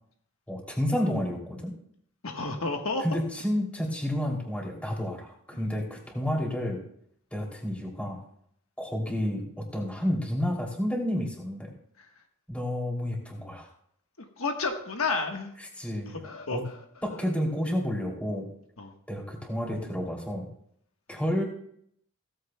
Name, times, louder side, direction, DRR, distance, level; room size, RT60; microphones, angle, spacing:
voice 1, 0.5-1.7 3.0-6.8 7.3-8.2 8.8-11.7 12.5-13.7 15.8-16.2 16.5-16.6 17.0-18.5 19.1-20.5 21.1-21.4, equal, 5° left, -1 dB, 2.8 m, -30 dB
voice 2, 2.2-3.2 5.5-5.7 12.0-12.1 14.4-15.5 16.1-16.8 18.8-18.9, left 3 dB, 70° left, 3 dB, 1.3 m, -31 dB
17.0 x 14.5 x 2.2 m, 0.68 s
head